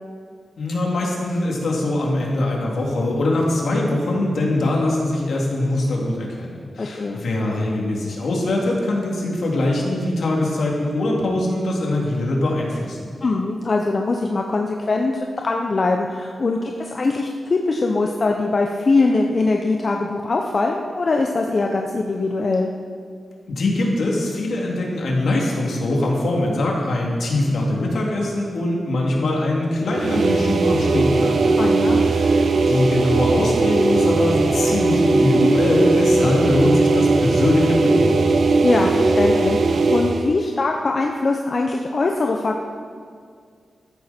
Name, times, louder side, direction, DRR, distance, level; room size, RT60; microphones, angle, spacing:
voice 1, 0.6-13.1 23.5-31.7 32.1-38.4, left 1 dB, 75° left, -2 dB, 3.1 m, -22 dB
voice 2, 6.8-7.2 13.2-15.1 15.4-22.7 31.6-32.1 38.6-42.6, left 3 dB, 45° left, 2 dB, 0.9 m, -22 dB
sound 1, 29.9-40.3, right 3 dB, 70° right, 0.9 m, -18 dB
14.0 x 14.0 x 4.5 m, 2.1 s
cardioid pair, 85°, 0 cm